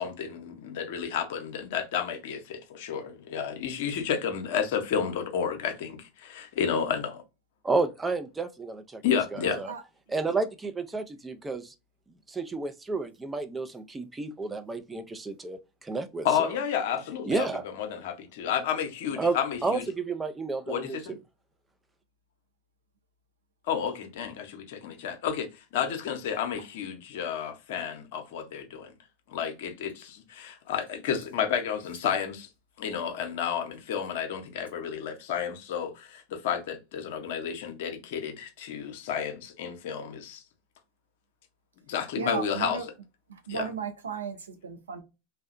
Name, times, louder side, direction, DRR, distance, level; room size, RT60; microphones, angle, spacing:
voice 1, 0.0-7.2 9.0-9.6 16.2-17.5 17.7-19.9 20.7-21.1 23.7-28.9 29.3-32.5 32.8-40.4 41.9-42.9 43.5-43.7, left 8 dB, 65° left, 0.6 m, -31 dB
voice 2, 7.6-9.0 9.3-9.7 10.1-11.7 12.3-16.5 17.3-17.6 19.2-21.2, right 3 dB, 15° right, 0.4 m, -31 dB
voice 3, 9.4-9.8 42.2-42.8 43.5-45.0, right 6 dB, 85° right, 0.5 m, -35 dB
2.7 x 2.0 x 2.5 m
hypercardioid pair, 90°, 0 cm